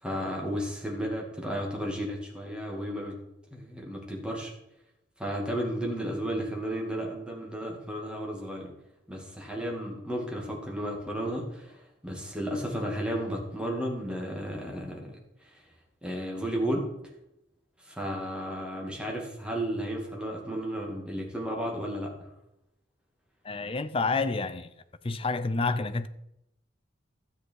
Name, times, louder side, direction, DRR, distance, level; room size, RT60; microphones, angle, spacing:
voice 1, 0.0-3.2 3.5-4.5 5.2-8.7 9.1-15.2 15.5-15.6 16.0-16.9 17.8-22.3, equal, 5° right, 2.3 m, -33 dB
voice 2, 23.4-24.7 25.0-26.1, left 3 dB, 30° left, 0.5 m, -29 dB
12.5 x 8.0 x 4.7 m
head